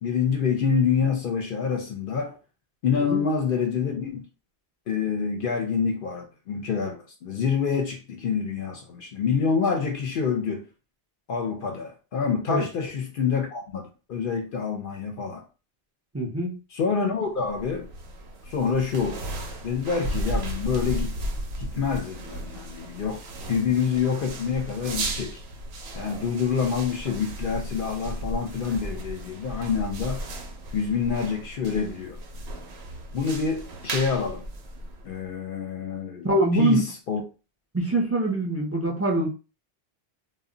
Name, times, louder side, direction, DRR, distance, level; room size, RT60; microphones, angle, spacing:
voice 1, 0.0-2.4 2.8-4.2 4.9-10.7 11.3-15.4 16.7-17.9 18.5-19.3 19.6-21.1 21.6-23.2 23.5-25.4 25.9-30.2 30.7-32.2 33.1-34.4 35.0-36.3 36.5-37.2, left 6 dB, 60° left, 0.6 m, -27 dB
voice 2, 16.1-16.6 36.2-36.8 37.7-39.3, right 1 dB, 20° right, 0.4 m, -24 dB
sound 1, 17.4-35.3, right 1 dB, 70° right, 0.8 m, -35 dB
2.2 x 2.0 x 3.7 m
omnidirectional pair, 1.1 m